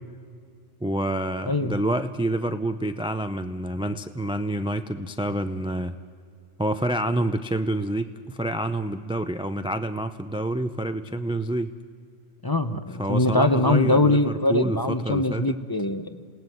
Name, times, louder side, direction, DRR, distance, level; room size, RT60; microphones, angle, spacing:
voice 1, 0.8-6.0 6.6-11.7 13.0-15.6, right 1 dB, 10° right, 9 dB, 0.3 m, -28 dB
voice 2, 1.5-1.8 12.4-16.3, left 2 dB, 20° left, 9 dB, 0.7 m, -23 dB
28.0 x 18.0 x 7.9 m, 2.3 s
omnidirectional pair, 1.3 m